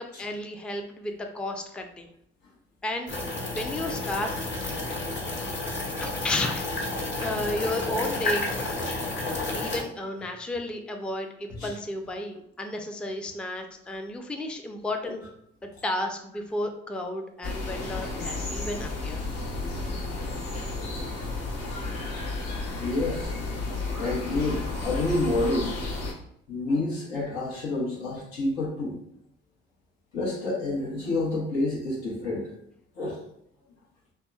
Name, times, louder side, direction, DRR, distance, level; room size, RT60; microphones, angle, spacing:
voice 1, 0.0-2.1 2.8-4.3 6.0-6.8 7.2-8.5 9.5-15.2 15.8-19.2, left 1 dB, 5° left, 4 dB, 0.3 m, -33 dB
sound 1, 3.1-9.8, left 2 dB, 40° left, 1.0 m, -31 dB
sound 2, 17.4-26.1, left 3 dB, 65° left, 0.8 m, -32 dB
voice 2, 22.8-23.3 24.0-25.7 26.5-29.0 30.1-32.5 33.0-33.2, left 2 dB, 90° left, -5 dB, 0.9 m, -28 dB
2.8 x 2.1 x 2.3 m, 0.72 s
hypercardioid pair, 50°, 29 cm